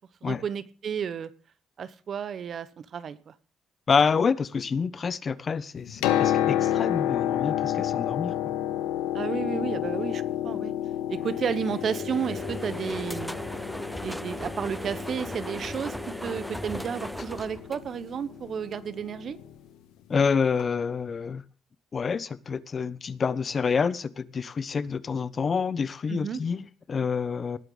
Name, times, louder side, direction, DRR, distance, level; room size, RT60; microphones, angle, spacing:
voice 1, 0.2-1.3 1.8-3.3 7.8-8.0 9.1-10.7 11.1-13.4 13.9-16.0 16.2-19.4 26.1-26.4, right 7 dB, 60° right, 1.1 m, -32 dB
voice 2, 3.9-8.5 20.1-21.4 21.9-27.6, left 5 dB, 45° left, 0.9 m, -27 dB
Piano, 5.8-19.5 20.6-20.7, left 11 dB, 80° left, 1.1 m, -30 dB
sound 1, 11.1-18.4, equal, ahead, 0.7 m, -37 dB
19.0 x 8.1 x 3.9 m
hypercardioid pair, 50°, 0 cm